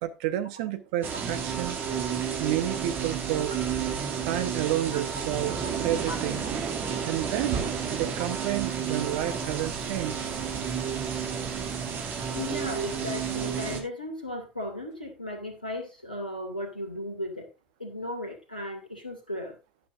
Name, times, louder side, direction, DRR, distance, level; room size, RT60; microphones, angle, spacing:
voice 1, 0.0-1.8 2.4-3.5 4.2-6.4 7.0-10.3, right 13 dB, 65° right, 11 dB, 1.1 m, -30 dB
sound 1, 1.0-13.8, right 7 dB, 45° right, 2.6 m, -31 dB
voice 2, 12.3-17.5 17.8-19.6, left 1 dB, 85° left, 5 dB, 2.3 m, -36 dB
11.5 x 11.5 x 2.6 m, 0.25 s
figure-of-eight pair, 55°, 4 cm